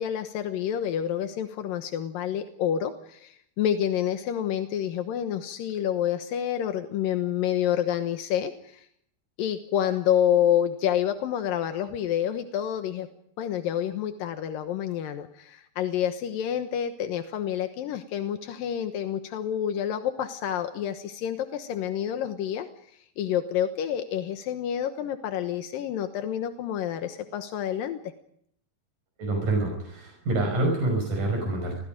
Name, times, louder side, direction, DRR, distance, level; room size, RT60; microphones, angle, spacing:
voice 1, 0.0-8.9 9.4-13.1 13.4-22.7 23.2-28.0, left 10 dB, 85° left, 7 dB, 2.9 m, -28 dB
voice 2, 29.2-31.8, right 2 dB, 70° right, 1 dB, 7.1 m, -26 dB
29.0 x 23.0 x 5.2 m, 0.69 s
omnidirectional pair, 3.9 m